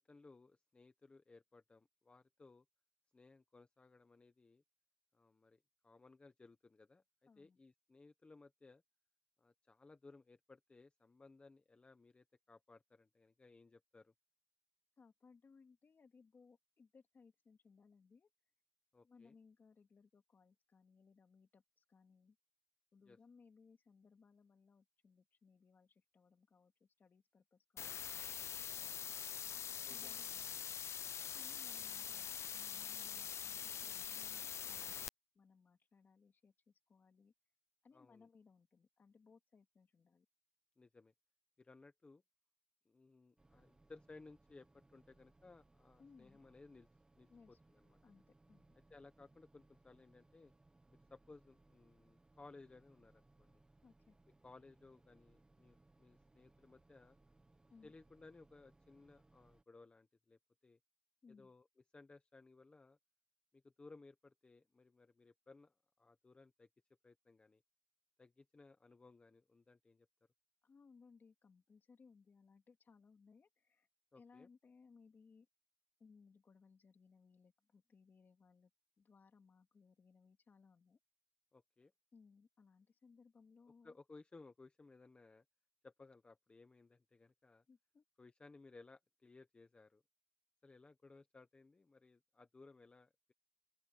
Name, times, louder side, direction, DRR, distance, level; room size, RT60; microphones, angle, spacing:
voice 1, 0.0-2.6 3.1-4.6 5.1-8.8 9.4-14.1 18.9-19.3 23.1-23.2 29.8-30.3 37.9-38.3 40.8-41.1 41.6-42.2 42.9-46.9 47.1-47.6 47.8-48.0 48.9-50.5 50.9-53.6 54.3-57.2 57.8-60.8 61.3-61.6 61.9-63.0 63.5-66.7 67.0-67.6 68.2-70.1 74.1-74.5 81.5-81.9 83.8-85.4 85.8-87.6 88.2-90.0 90.6-93.3, left 3 dB, 25° left, 0.9 m, -61 dB
voice 2, 7.3-7.6 15.0-18.3 19.0-22.4 22.9-29.3 29.9-30.8 31.3-34.9 35.3-37.3 37.8-40.3 46.0-46.4 47.3-47.6 48.0-48.8 53.8-54.2 57.7-57.9 61.2-61.5 70.6-73.9 74.2-75.5 76.0-78.7 79.0-81.0 82.1-84.0 87.7-88.0, left 5 dB, 40° left, 2.6 m, -66 dB
sound 1, 27.8-35.1, left 8 dB, 60° left, 0.4 m, -44 dB
sound 2, 43.4-59.6, right 2 dB, 15° right, 0.9 m, -70 dB
open air
wide cardioid pair, 175°, 5 cm